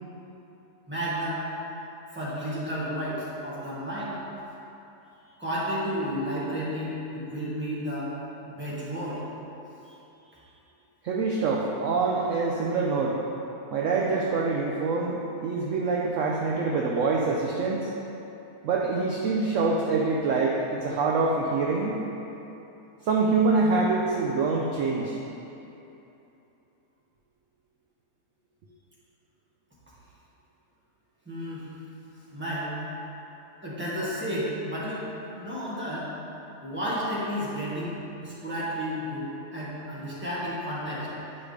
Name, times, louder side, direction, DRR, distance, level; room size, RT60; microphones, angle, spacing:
voice 1, 0.9-1.4 2.1-4.2 5.4-8.1 8.4-9.2 31.2-31.6 32.3-32.8 33.6-35.0 35.3-36.1 36.6-41.1, equal, 5° right, -9 dB, 1.5 m, -32 dB
voice 2, 11.0-13.2 13.7-17.9 18.6-22.0 23.0-25.2, right 4 dB, 65° right, -2 dB, 0.8 m, -25 dB
9.7 x 5.0 x 3.2 m, 3.0 s
omnidirectional pair, 1.7 m